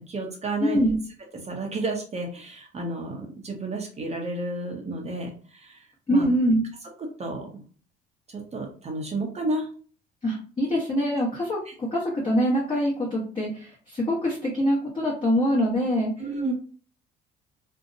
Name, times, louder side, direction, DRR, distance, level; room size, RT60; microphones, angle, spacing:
voice 1, 0.1-0.8 1.4-5.8 6.1-6.3 7.2-7.6 8.3-9.7 11.7-11.8 16.2-16.5, right 2 dB, 35° right, 1 dB, 0.7 m, -31 dB
voice 2, 0.6-1.0 6.1-6.7 10.2-16.2, equal, 25° left, -5 dB, 1.0 m, -24 dB
2.7 x 2.1 x 2.6 m, 0.41 s
supercardioid pair, 85°, 20 cm